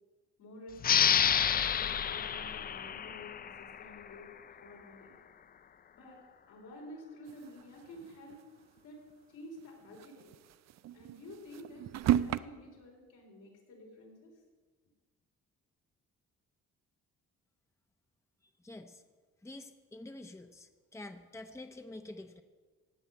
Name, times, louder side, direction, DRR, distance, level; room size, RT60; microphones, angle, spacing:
voice 1, 0.4-1.1 1.5-4.3 4.6-5.1 5.9-8.5 8.8-9.0 9.3-10.3 10.9-14.3, left 1 dB, 85° left, -2 dB, 4.7 m, -51 dB
sound 1, 0.8-4.1, left 8 dB, 30° left, 0.4 m, -29 dB
sound 2, 7.3-8.4 8.8-8.9 9.1-9.2 9.8-12.4, right 12 dB, 60° right, 0.5 m, -33 dB
voice 2, 18.6-19.0 19.4-22.4, left 2 dB, 10° left, 6 dB, 0.8 m, -47 dB
15.5 x 5.7 x 9.2 m, 1.4 s
cardioid pair, 90°, 30 cm